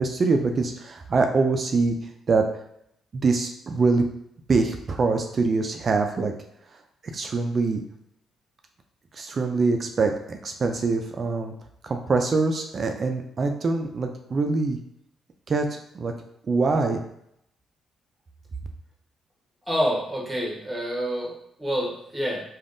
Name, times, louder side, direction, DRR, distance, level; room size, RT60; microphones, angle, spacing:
voice 1, 0.0-2.5 3.1-4.0 4.5-6.3 7.1-7.8 9.1-11.5 11.8-14.8 15.5-16.1 16.5-17.0, right 3 dB, 40° right, 4 dB, 0.3 m, -24 dB
voice 2, 19.7-22.4, equal, 10° right, -2 dB, 1.0 m, -27 dB
3.4 x 2.3 x 2.5 m, 0.74 s
cardioid pair, 90°, 0 cm